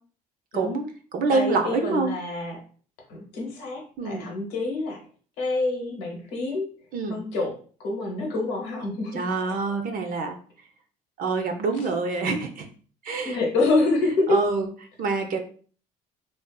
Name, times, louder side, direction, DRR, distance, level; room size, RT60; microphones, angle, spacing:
voice 1, 0.5-0.9 1.3-2.6 3.1-5.0 5.4-6.7 7.1-7.5 7.8-9.5 11.8-11.9 13.2-14.4, left 2 dB, 85° left, 0 dB, 0.9 m, -27 dB
voice 2, 1.1-2.1 4.0-4.3 6.9-7.2 9.1-10.4 11.2-12.7 13.0-13.4 14.3-14.7 15.0-15.4, right 4 dB, 55° right, 5 dB, 0.5 m, -26 dB
2.5 x 2.3 x 2.2 m, 0.42 s
supercardioid pair, 70°, 17 cm